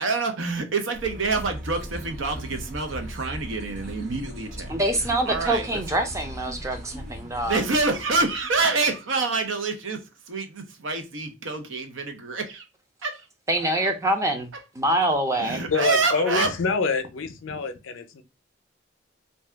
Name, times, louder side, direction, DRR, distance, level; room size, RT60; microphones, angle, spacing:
voice 1, 0.0-4.8 5.3-5.8 7.4-12.6 13.0-13.3 13.6-13.9 15.4-16.5, right 3 dB, 80° right, 0.6 m, -27 dB
sound 1, 0.9-8.6, equal, 40° right, 1.0 m, -38 dB
voice 2, 4.7-7.6 13.5-15.6, right 1 dB, 15° right, 0.5 m, -25 dB
voice 3, 15.7-18.2, left 5 dB, 85° left, 0.5 m, -26 dB
2.6 x 2.3 x 3.3 m
head